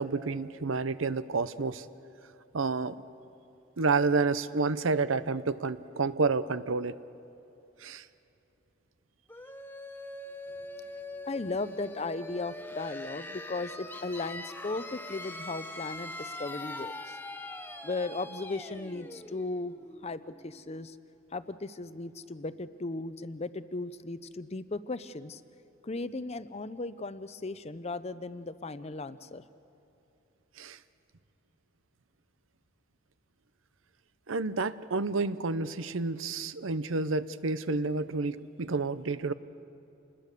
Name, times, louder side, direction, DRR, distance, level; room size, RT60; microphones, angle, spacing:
voice 1, 0.0-1.9 2.5-3.0 3.8-7.0 7.8-8.0 30.6-30.8 34.3-39.3, right 4 dB, 85° right, 14 dB, 0.7 m, -29 dB
sound 1, 9.3-20.8, left 2 dB, 10° left, 0.9 m, -43 dB
voice 2, 11.2-17.2 17.8-19.7 20.0-21.0 21.3-25.4 25.8-29.4, left 3 dB, 30° left, 13 dB, 0.6 m, -36 dB
28.0 x 21.0 x 6.8 m, 2.8 s
head